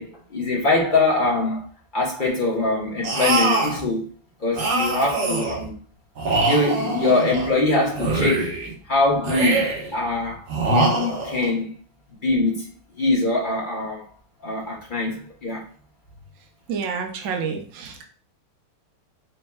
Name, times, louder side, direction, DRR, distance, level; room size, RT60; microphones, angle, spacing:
voice 1, 0.0-1.6 1.9-4.1 4.4-5.8 6.5-8.6 8.9-9.7 9.9-11.7 12.2-12.7 13.0-14.0 14.4-15.6, left 2 dB, 40° left, -3 dB, 0.7 m, -23 dB
sound 1, 3.0-3.8 4.5-5.6 6.2-7.5 7.9-8.7 9.2-9.9 10.5-11.5, right 3 dB, 60° right, 1.8 m, -23 dB
voice 2, 16.7-18.1, right 6 dB, 90° right, 3 dB, 0.6 m, -29 dB
4.5 x 4.2 x 2.3 m, 0.40 s
omnidirectional pair, 2.3 m